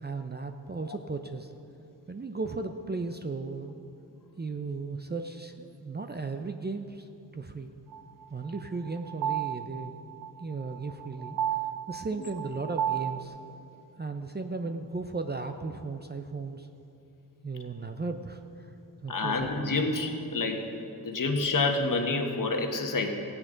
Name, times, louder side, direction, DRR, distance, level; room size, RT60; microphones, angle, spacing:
voice 1, 0.0-1.5 2.1-3.8 4.4-7.7 8.3-9.9 10.4-11.4 11.9-13.4 14.0-16.7 17.4-18.7 19.0-19.7, right 3 dB, 25° right, 6 dB, 0.6 m, -36 dB
sound 1, 7.9-13.2, right 10 dB, 70° right, 0.5 m, -33 dB
voice 2, 19.1-20.6 21.0-23.1, left 3 dB, 50° left, 3 dB, 1.4 m, -28 dB
15.5 x 9.7 x 3.9 m, 2.8 s
cardioid pair, 50°, 41 cm